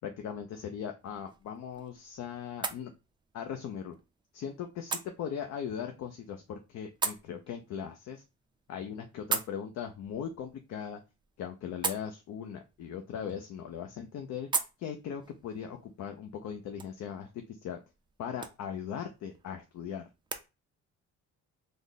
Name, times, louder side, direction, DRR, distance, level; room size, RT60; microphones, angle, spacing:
voice 1, 0.0-2.9 3.3-4.0 4.3-8.2 8.7-11.0 11.4-14.5 14.8-17.8 18.2-20.1, left 8 dB, 60° left, 6 dB, 0.5 m, -39 dB
sound 1, 1.0-20.5, right 4 dB, 15° right, 0.3 m, -42 dB
3.3 x 2.1 x 3.8 m, 0.27 s
cardioid pair, 120°, 31 cm